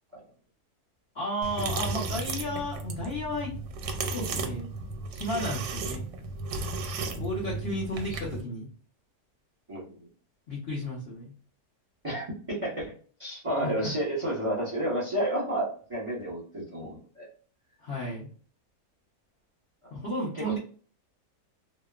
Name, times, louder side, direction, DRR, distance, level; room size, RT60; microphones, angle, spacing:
voice 1, 1.1-3.5 4.1-4.7 5.1-6.0 7.2-8.7 10.5-11.3 13.8-13.9 17.8-18.3 19.9-20.6, equal, 55° left, -6 dB, 0.7 m, -33 dB
sound 1, 1.4-8.4, right 3 dB, 85° right, 1.2 m, -34 dB
voice 2, 9.7-10.1 12.0-12.9 13.2-17.3 20.3-20.6, right 1 dB, 30° right, -6 dB, 0.7 m, -31 dB
2.8 x 2.0 x 2.3 m, 0.43 s
omnidirectional pair, 1.8 m